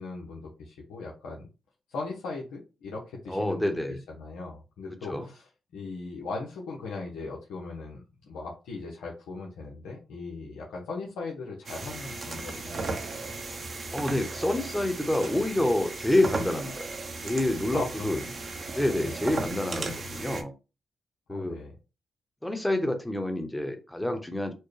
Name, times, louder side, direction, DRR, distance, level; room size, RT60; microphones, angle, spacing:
voice 1, 0.0-1.5 1.9-3.8 4.1-5.5 5.7-13.1 17.7-18.3 19.0-19.1 21.3-21.7, left 3 dB, 90° left, -3 dB, 0.9 m, -38 dB
voice 2, 3.3-4.0 5.1-5.3 13.9-16.9 17.2-18.2 18.7-20.5 21.3-21.6 22.4-24.5, left 1 dB, 10° left, 6 dB, 1.0 m, -28 dB
sound 1, 11.7-20.4, right 3 dB, 50° right, 0.8 m, -36 dB
4.4 x 2.2 x 3.2 m, 0.30 s
cardioid pair, 65°, 0 cm